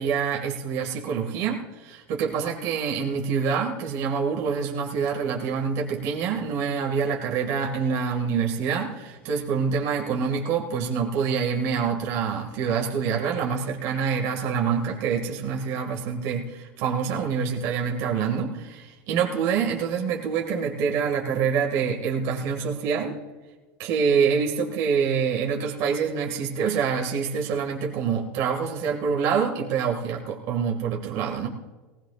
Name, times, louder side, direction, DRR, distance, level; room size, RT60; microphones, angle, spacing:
voice 1, 0.0-23.2 23.8-31.5, right 6 dB, 55° right, 0 dB, 2.2 m, -26 dB
19.5 x 18.0 x 2.5 m, 1.3 s
supercardioid pair, 135°, 7 cm